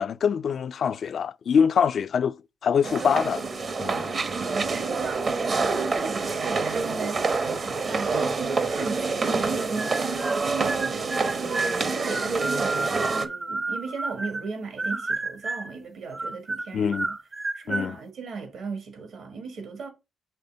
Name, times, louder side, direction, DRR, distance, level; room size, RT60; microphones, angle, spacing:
voice 1, 0.0-2.4 2.6-3.4 3.8-4.1 16.7-17.1 17.7-18.0, left 7 dB, 60° left, 0.3 m, -24 dB
sound 1, 2.8-13.3, right 4 dB, 50° right, 0.9 m, -27 dB
voice 2, 4.4-5.4 5.6-17.2 17.5-19.9, right 4 dB, 70° right, 1.8 m, -36 dB
sound 2, 9.7-10.4 10.7-14.5 14.8-15.8 16.1-17.9, right 3 dB, 30° right, 0.5 m, -31 dB
5.6 x 3.4 x 5.0 m
supercardioid pair, 65°, 0 cm